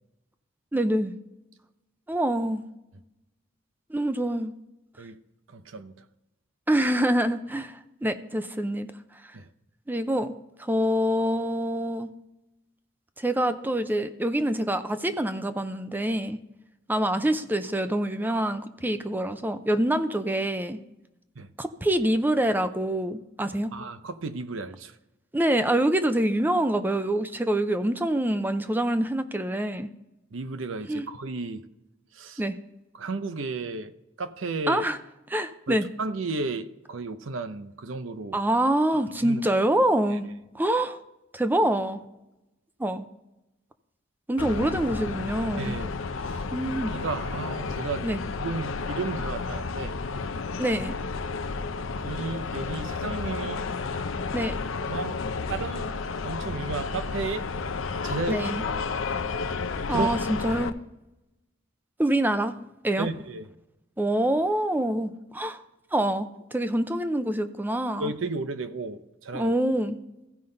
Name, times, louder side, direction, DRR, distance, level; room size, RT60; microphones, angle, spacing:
voice 1, 0.7-1.1 2.1-2.6 3.9-4.5 6.7-8.9 9.9-12.1 13.2-16.4 16.9-20.8 21.6-23.7 25.3-29.9 30.9-31.1 32.4-32.6 34.7-35.0 35.3-35.9 38.3-40.3 40.5-41.0 41.3-42.0 42.8-43.0 44.3-45.8 46.5-46.9 48.0-48.2 50.6-51.0 54.3-54.5 58.3-58.6 59.9-60.7 62.0-62.5 62.8-63.1 64.0-65.6 65.9-68.1 69.3-70.0, right 1 dB, 10° right, 10 dB, 0.5 m, -25 dB
voice 2, 5.5-6.0 9.3-9.5 21.4-21.5 23.7-24.9 30.3-31.7 32.1-32.4 32.9-33.9 34.2-34.8 35.7-38.4 39.2-39.4 40.1-40.2 45.6-45.9 46.2-46.4 46.8-48.1 48.4-50.0 52.0-53.7 54.8-55.2 55.5-56.0 56.2-57.5 58.0-58.7 59.9-60.1 63.0-63.5 68.0-69.5, right 3 dB, 75° right, 11 dB, 0.7 m, -33 dB
sound 1, 44.4-60.7, left 4 dB, 80° left, 0.6 m, -32 dB
15.5 x 5.5 x 3.9 m, 0.92 s
head